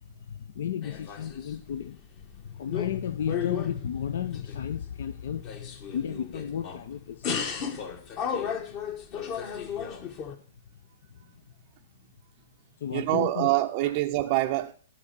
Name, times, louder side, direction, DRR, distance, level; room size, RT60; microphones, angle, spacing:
voice 1, 0.3-2.0 2.3-7.8 11.1-11.2 12.8-13.5 13.8-13.9, left 9 dB, 65° left, 0.6 m, -33 dB
sound 1, 0.8-1.9 2.2-3.0 3.3-4.9 5.3-6.9 7.2-10.4, left 7 dB, 40° left, 1.3 m, -34 dB
voice 2, 12.9-14.7, right 17 dB, 45° right, 0.6 m, -25 dB
12.5 x 4.3 x 6.7 m
hypercardioid pair, 120°, 0 cm